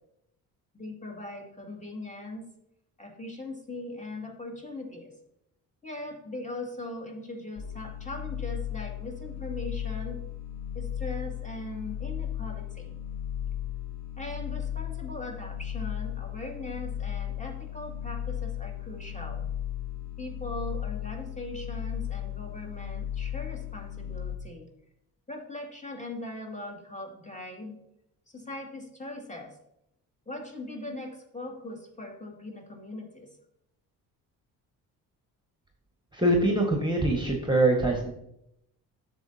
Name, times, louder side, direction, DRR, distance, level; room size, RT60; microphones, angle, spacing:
voice 1, 0.7-2.5 3.0-5.1 5.8-10.2 10.7-13.0 14.2-19.4 20.2-24.7 25.3-27.8 28.3-29.6 30.3-33.3, left 2 dB, 15° left, 1 dB, 2.4 m, -40 dB
sound 1, 7.6-24.4, left 10 dB, 60° left, 1.1 m, -35 dB
voice 2, 36.1-38.1, right 1 dB, 10° right, 1 dB, 1.6 m, -24 dB
10.0 x 7.5 x 2.8 m, 0.79 s
hypercardioid pair, 55°, 42 cm